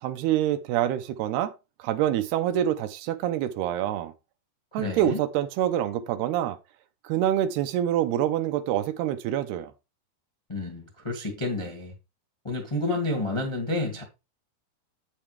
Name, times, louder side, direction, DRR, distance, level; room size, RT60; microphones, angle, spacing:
voice 1, 0.0-1.5 1.8-4.1 4.7-6.6 7.0-9.7, right 11 dB, 80° right, 2.6 m, -26 dB
voice 2, 4.8-5.2 10.5-11.9 12.4-14.0, left 2 dB, 30° left, 0.5 m, -30 dB
8.6 x 7.3 x 3.3 m
omnidirectional pair, 4.8 m